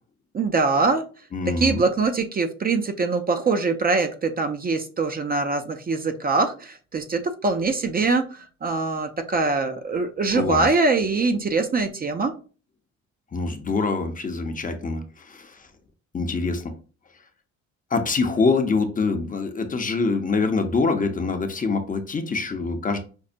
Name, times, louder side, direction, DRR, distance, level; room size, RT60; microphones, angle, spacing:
voice 1, 0.3-1.0 1.5-12.3, right 3 dB, 30° right, 0.4 m, -23 dB
voice 2, 1.3-1.8 10.3-10.7 13.3-15.5 16.1-16.7 17.9-23.0, left 4 dB, 25° left, 0.6 m, -25 dB
5.3 x 2.1 x 2.5 m
cardioid pair, 90°, 30 cm